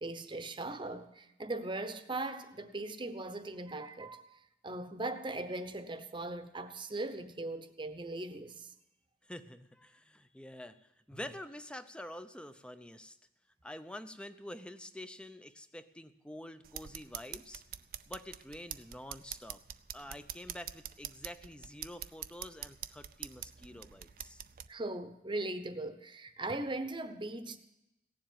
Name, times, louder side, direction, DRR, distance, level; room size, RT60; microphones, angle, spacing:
voice 1, 0.0-4.2 4.6-8.7 24.7-27.6, right 2 dB, 30° right, 0.9 m, -39 dB
voice 2, 9.3-10.8 11.1-13.2 13.6-17.6 18.1-19.6 19.9-24.4, left 1 dB, 5° left, 0.6 m, -47 dB
sound 1, 16.6-24.7, right 11 dB, 55° right, 0.5 m, -46 dB
17.0 x 7.4 x 9.1 m
head